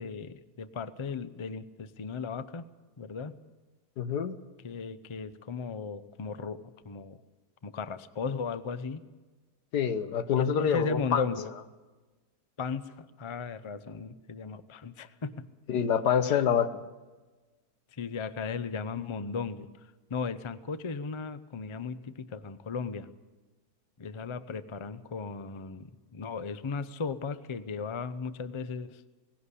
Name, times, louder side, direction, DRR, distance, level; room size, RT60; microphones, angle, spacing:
voice 1, 0.0-2.6 3.0-3.4 4.6-7.2 7.6-9.0 10.4-11.5 12.6-15.4 16.2-16.4 17.9-23.1 24.0-29.0, left 5 dB, 50° left, 13 dB, 0.3 m, -36 dB
voice 2, 4.0-4.4 9.7-11.2 15.7-16.7, left 8 dB, 80° left, 11 dB, 1.6 m, -26 dB
19.0 x 16.5 x 8.4 m, 1.3 s
omnidirectional pair, 1.7 m